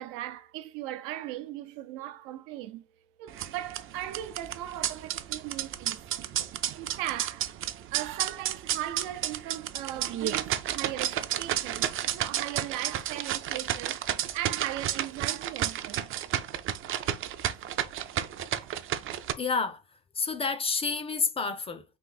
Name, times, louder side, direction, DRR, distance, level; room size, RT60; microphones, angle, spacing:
voice 1, 0.0-2.9 3.2-6.0 6.7-7.5 7.9-14.1 14.3-16.1 18.6-18.7, right 13 dB, 90° right, 0.7 m, -38 dB
sound 1, 3.3-19.3, right 11 dB, 40° right, 0.4 m, -32 dB
voice 2, 19.4-19.8 20.2-21.8, left 4 dB, 20° left, 0.4 m, -29 dB
3.9 x 2.5 x 3.9 m
cardioid pair, 130°, 31 cm